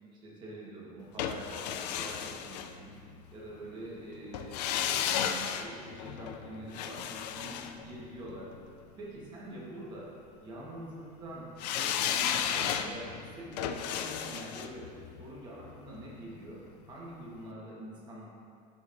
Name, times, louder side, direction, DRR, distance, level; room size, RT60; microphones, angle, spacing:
voice 1, 0.2-2.9 3.3-8.5 9.0-10.1 10.4-11.5 11.8-18.3, right 1 dB, 20° right, -5 dB, 1.3 m, -45 dB
sound 1, 1.2-3.3 4.3-8.6 11.6-16.6 16.9-17.0, left 9 dB, 75° left, 0.4 m, -34 dB
9.3 x 5.0 x 2.6 m, 2.4 s
supercardioid pair, 170°, 21 cm